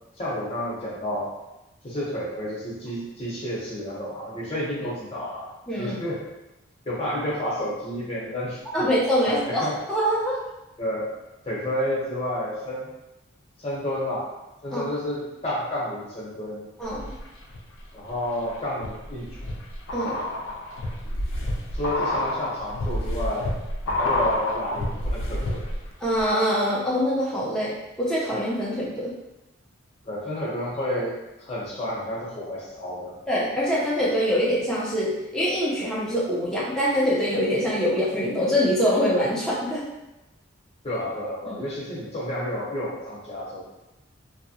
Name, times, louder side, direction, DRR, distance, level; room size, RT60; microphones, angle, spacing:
voice 1, 0.2-1.3 1.8-5.5 5.8-6.2 6.8-8.9 9.3-9.8 10.8-11.1 11.4-12.9 13.6-14.3 14.6-16.6 17.9-19.4 21.7-23.5 24.0-25.7 30.0-33.2 40.8-43.6, left 1 dB, 30° left, -7 dB, 0.9 m, -30 dB
voice 2, 5.7-6.0 8.7-10.4 14.7-14.8 16.8-17.2 19.9-20.2 26.0-29.2 33.3-39.9 41.5-41.6, equal, 5° left, -8 dB, 0.6 m, -24 dB
sound 1, 16.9-17.6 18.1-25.9 26.2-26.3, left 1 dB, 80° left, 0.5 m, -29 dB
2.7 x 2.1 x 2.7 m, 0.96 s
head